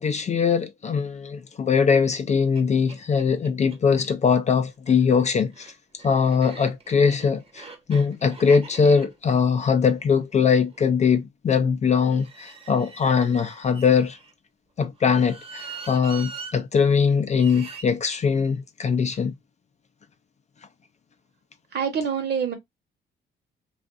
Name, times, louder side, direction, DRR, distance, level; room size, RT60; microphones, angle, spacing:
voice 1, 0.0-5.7 6.0-14.2 14.8-19.3, left 6 dB, 35° left, 0.4 m, -21 dB
sound 1, 2.1-2.2 2.5-2.6 2.9-3.8 4.7-10.9 12.0-14.3 15.0-16.5 17.3-17.9, right 5 dB, 30° right, 0.8 m, -43 dB
voice 2, 21.7-22.5, right 7 dB, 55° right, 1.0 m, -25 dB
2.5 x 2.4 x 2.4 m
cardioid pair, 90°, 20 cm